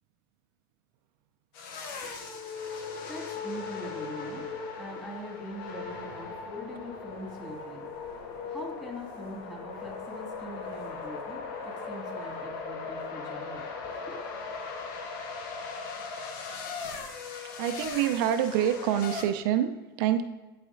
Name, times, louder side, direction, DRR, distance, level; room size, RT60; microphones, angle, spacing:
sound 1, 1.5-19.2, left 4 dB, 65° left, 1.0 m, -38 dB
voice 1, 1.9-4.4 4.8-14.2, equal, 5° left, -2 dB, 2.2 m, -43 dB
voice 2, 17.6-20.2, right 10 dB, 70° right, 8 dB, 0.4 m, -26 dB
11.0 x 4.1 x 2.5 m, 1.2 s
supercardioid pair, 110°, 12 cm